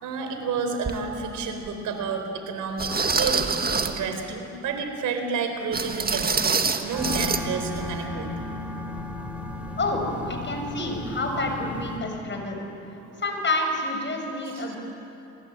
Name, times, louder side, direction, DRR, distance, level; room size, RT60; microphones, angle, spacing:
voice 1, 0.0-3.6 3.8-8.3 13.0-13.2 14.4-14.8, right 5 dB, 85° right, 5 dB, 4.2 m, -30 dB
sound 1, 0.8-1.0 1.7-1.8 2.8-4.1 5.7-7.4 7.7-7.9 8.3-8.4, right 4 dB, 30° right, 1.7 m, -25 dB
sound 2, 6.9-12.0, left 1 dB, 5° right, 4.9 m, -34 dB
voice 2, 9.8-12.6 13.2-14.8, left 2 dB, 40° left, 3 dB, 6.5 m, -28 dB
29.0 x 21.0 x 8.9 m, 2.9 s
cardioid pair, 90°, 30 cm